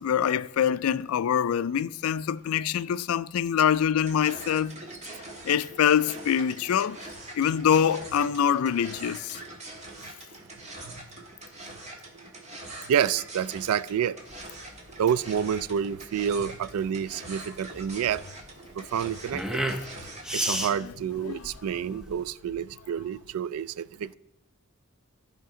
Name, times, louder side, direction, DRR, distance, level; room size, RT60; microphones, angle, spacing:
voice 1, 0.0-4.7 5.4-7.0 7.3-9.4 20.8-20.9 21.2-21.4, left 8 dB, 70° left, 0.3 m, -24 dB
sound 1, 4.0-20.7, right 2 dB, 30° right, 1.5 m, -44 dB
voice 2, 12.9-14.2 15.0-18.2 18.8-19.6 20.3-24.2, right 8 dB, 80° right, 0.3 m, -28 dB
sound 2, 14.3-22.3, equal, 5° right, 0.6 m, -35 dB
14.5 x 5.1 x 3.7 m
head